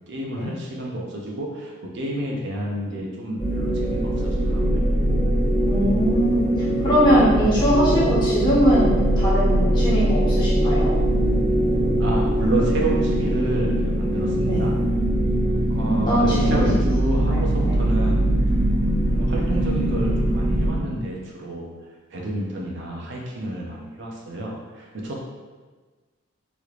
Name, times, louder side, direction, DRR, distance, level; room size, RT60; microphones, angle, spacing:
voice 1, 0.1-4.9 12.0-14.7 15.2-15.4 15.7-18.2 19.0-21.7 22.1-25.2, right 1 dB, 60° right, -2 dB, 0.5 m, -29 dB
sound 1, 3.4-20.7, right 1 dB, 50° left, 1.3 m, -21 dB
sound 2, 5.4-12.7, right 2 dB, 90° left, 0.6 m, -39 dB
voice 2, 5.6-6.5 6.8-8.9 9.2-10.9 14.4-14.7 16.1-16.6 17.3-17.4 17.6-17.7, equal, 20° left, -9 dB, 1.1 m, -21 dB
3.2 x 3.0 x 2.4 m, 1.3 s
head